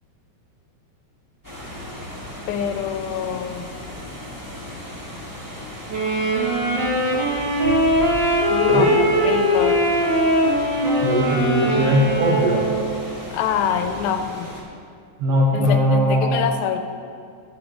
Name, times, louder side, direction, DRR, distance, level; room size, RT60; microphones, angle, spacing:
sound 1, 1.4-14.6, left 1 dB, 20° right, 0.4 m, -36 dB
voice 1, 2.5-3.7 8.5-8.8 9.2-9.8 13.3-14.6 15.5-16.8, left 8 dB, 85° left, 7 dB, 2.4 m, -25 dB
Wind instrument woodwind instrument, 5.9-13.1, equal, 40° right, 2.1 m, -21 dB
voice 2, 8.7-9.1 11.0-12.7 15.2-16.4, equal, 75° right, -3 dB, 1.4 m, -19 dB
11.0 x 10.5 x 3.8 m, 2.3 s
omnidirectional pair, 4.2 m